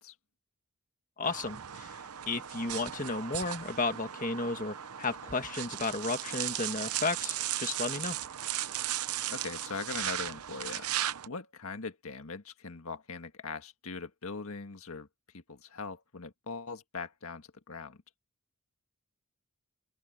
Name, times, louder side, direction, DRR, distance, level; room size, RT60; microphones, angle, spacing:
voice 1, 1.2-8.2, left 3 dB, 35° left, 1.8 m, -34 dB
sound 1, 1.2-11.3, right 12 dB, 80° right, 0.8 m, -36 dB
voice 2, 9.3-10.9 11.3-15.1 15.3-18.0, left 4 dB, 75° left, 1.7 m, -41 dB
open air
head